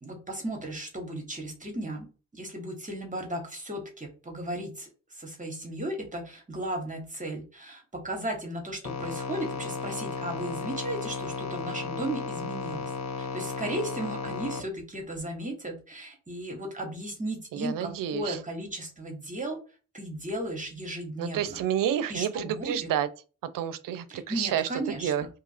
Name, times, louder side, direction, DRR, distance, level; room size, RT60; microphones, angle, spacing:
voice 1, 0.0-2.1 2.3-12.9 13.2-19.6 19.9-21.6 22.1-22.9 24.1-25.1, right 1 dB, 25° right, 1.1 m, -35 dB
sound 1, 8.8-14.6, left 4 dB, 55° left, 0.6 m, -34 dB
voice 2, 17.5-18.4 21.2-23.1 23.4-24.7 25.0-25.3, right 10 dB, 85° right, 0.5 m, -29 dB
2.7 x 2.4 x 4.1 m
cardioid pair, 80°, 32 cm